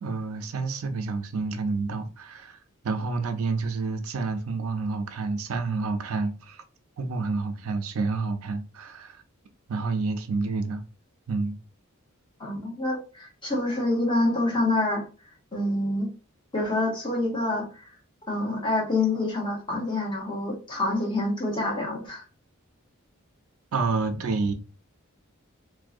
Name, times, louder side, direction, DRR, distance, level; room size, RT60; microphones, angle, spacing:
voice 1, 0.0-2.6 2.8-6.6 7.0-9.2 9.7-10.8 11.3-11.6 23.7-24.5, right 3 dB, 85° right, 0.4 m, -29 dB
voice 2, 12.4-15.1 15.5-16.1 16.5-17.9 18.3-22.2, left 2 dB, 20° left, 0.7 m, -27 dB
2.6 x 2.0 x 2.4 m
head